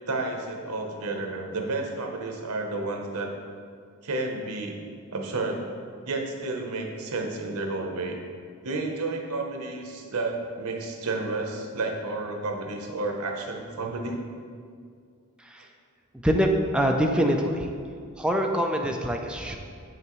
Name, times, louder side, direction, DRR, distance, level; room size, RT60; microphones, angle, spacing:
voice 1, 0.1-3.3 4.0-4.8 5.1-5.6 6.1-8.2 8.6-14.2, right 2 dB, 75° right, 2 dB, 0.9 m, -31 dB
voice 2, 16.2-17.7 18.2-19.6, equal, 5° right, 1 dB, 0.3 m, -24 dB
7.5 x 6.0 x 3.1 m, 2.2 s
head